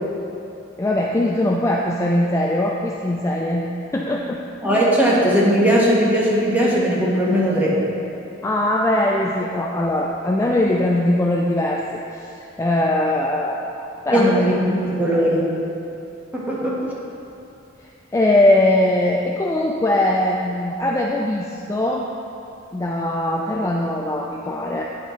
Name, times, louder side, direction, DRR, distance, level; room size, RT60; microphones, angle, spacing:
voice 1, 0.8-3.6 3.9-4.4 8.4-12.3 12.6-14.7 17.8-22.1 22.7-24.8, left 1 dB, 15° left, -1 dB, 0.3 m, -21 dB
voice 2, 4.6-7.8 14.1-15.6 16.3-16.8, equal, 10° right, -6 dB, 1.2 m, -18 dB
8.7 x 5.8 x 3.1 m, 2.7 s
head